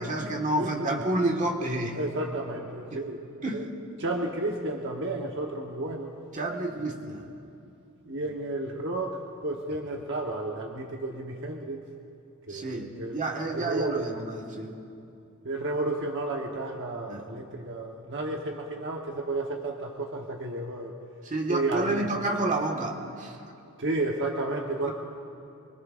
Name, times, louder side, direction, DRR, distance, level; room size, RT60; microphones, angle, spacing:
voice 1, 0.0-2.0 2.9-3.0 3.4-3.6 6.3-7.2 12.5-14.7 17.1-17.2 21.3-23.3 24.8-24.9, right 2 dB, 35° right, 1 dB, 1.6 m, -29 dB
voice 2, 0.6-1.0 1.9-3.2 3.5-3.7 4.0-6.1 8.1-11.8 12.5-13.2 13.5-14.1 15.4-20.9 21.5-22.1 23.8-24.9, right 2 dB, 55° right, 0 dB, 1.1 m, -32 dB
24.0 x 23.5 x 2.5 m, 2.6 s
head